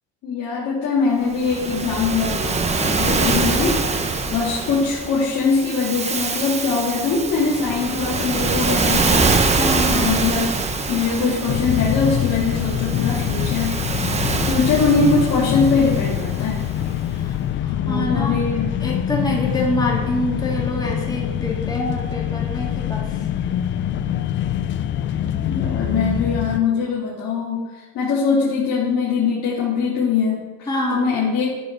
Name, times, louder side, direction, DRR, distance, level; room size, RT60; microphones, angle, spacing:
voice 1, 0.2-3.9 4.3-9.3 9.9-10.4 10.9-13.8 14.0-16.6 17.7-18.7 25.5-31.5, left 4 dB, 55° left, -8 dB, 2.9 m, -22 dB
Waves surf, 1.3-16.8, right 4 dB, 20° right, 1.0 m, -24 dB
voice 2, 9.6-10.1 17.1-17.4 17.6-18.4 18.8-23.2 30.7-31.1, left 1 dB, 15° left, -2 dB, 2.4 m, -26 dB
sound 1, 11.5-26.6, left 10 dB, 40° left, 0.5 m, -24 dB
12.0 x 5.0 x 6.3 m, 1.3 s
cardioid pair, 130°, 31 cm